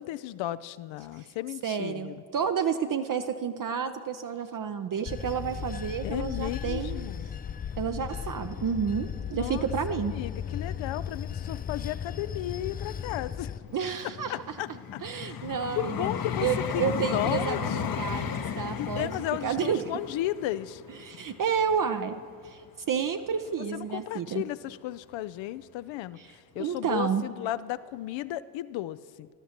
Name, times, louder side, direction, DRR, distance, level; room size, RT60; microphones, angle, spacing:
voice 1, 0.0-2.2 6.0-7.3 9.3-9.7 10.1-13.5 14.3-15.5 15.8-18.1 18.7-20.8 23.7-29.3, left 14 dB, 65° left, 15 dB, 0.6 m, -34 dB
voice 2, 1.6-7.1 7.8-10.2 13.7-14.3 15.0-16.1 16.4-19.1 19.4-19.9 21.0-22.6 22.9-24.4 26.2-26.3 26.6-27.2, right 7 dB, 40° right, 7 dB, 0.7 m, -30 dB
Bell / Train, 5.1-13.6, left 8 dB, 20° left, 0.3 m, -36 dB
Vehicle, 13.6-22.7 23.3-23.5, left 7 dB, 45° left, 0.9 m, -35 dB
18.5 x 12.0 x 2.9 m, 2.1 s
hypercardioid pair, 45°, 49 cm